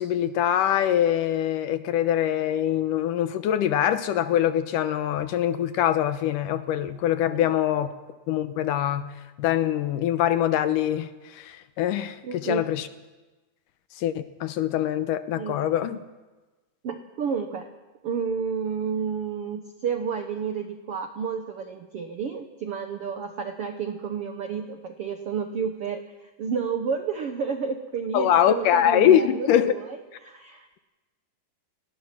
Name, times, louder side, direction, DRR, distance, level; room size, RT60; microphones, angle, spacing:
voice 1, 0.0-7.9 8.3-12.9 14.0-16.0 28.1-29.8, left 11 dB, 70° left, 11 dB, 2.2 m, -23 dB
voice 2, 12.2-12.7 15.4-15.8 16.8-17.7 18.0-30.0 30.2-30.8, right 6 dB, 75° right, 6 dB, 1.3 m, -31 dB
29.5 x 19.5 x 6.0 m, 1.2 s
omnidirectional pair, 4.4 m